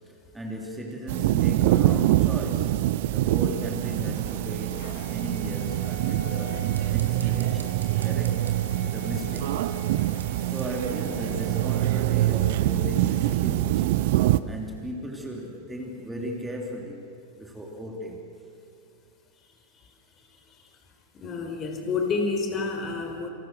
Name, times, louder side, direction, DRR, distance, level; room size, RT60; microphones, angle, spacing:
voice 1, 0.3-2.8 3.1-8.5 8.9-9.7 10.4-13.9 14.5-18.3, equal, 5° right, 0 dB, 3.4 m, -36 dB
sound 1, 1.1-14.4, right 14 dB, 50° right, 0.8 m, -25 dB
sound 2, 3.6-13.3, left 8 dB, 45° left, 2.0 m, -47 dB
sound 3, 6.5-11.8, right 5 dB, 70° right, 2.5 m, -51 dB
voice 2, 20.2-20.6 21.1-23.3, left 4 dB, 30° left, 5 dB, 4.3 m, -29 dB
29.0 x 27.5 x 6.4 m, 2.5 s
figure-of-eight pair, 90°, 0 cm